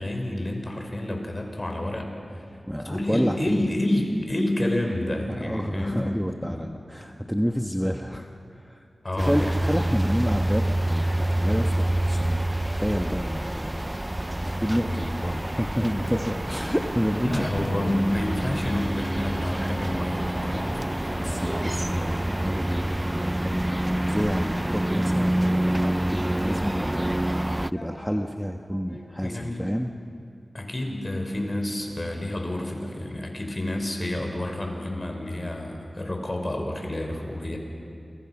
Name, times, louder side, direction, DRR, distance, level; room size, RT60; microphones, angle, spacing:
voice 1, 0.0-2.1 2.8-6.1 6.4-6.6 9.0-9.6 14.8-15.2 17.2-21.5 27.7-28.2 28.7-29.8 30.5-37.6, left 1 dB, 35° left, 3 dB, 5.6 m, -29 dB
voice 2, 2.7-3.6 5.4-8.3 8.5-8.8 9.2-13.8 14.4-17.9 21.2-27.2 27.7-29.9, equal, ahead, 3 dB, 1.4 m, -29 dB
sound 1, 9.2-27.7, right 1 dB, 15° right, 0.5 m, -27 dB
28.5 x 25.5 x 6.2 m, 2.5 s
cardioid pair, 45°, 0 cm